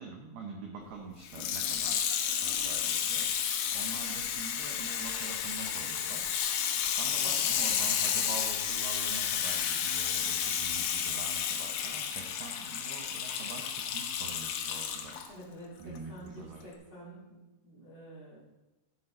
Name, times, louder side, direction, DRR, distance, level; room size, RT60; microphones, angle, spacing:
voice 1, 0.0-2.0 2.4-3.3 3.7-6.3 7.0-15.2 15.8-16.7, right 4 dB, 75° right, 1 dB, 2.4 m, -45 dB
Water tap faucet / Sink (filling or washing), 1.3-15.3 16.0-16.1, left 9 dB, 80° left, 3.3 m, -31 dB
voice 2, 7.2-7.5 15.3-18.4, right 1 dB, 20° right, -7 dB, 2.4 m, -48 dB
11.0 x 8.0 x 4.4 m, 1.0 s
omnidirectional pair, 5.7 m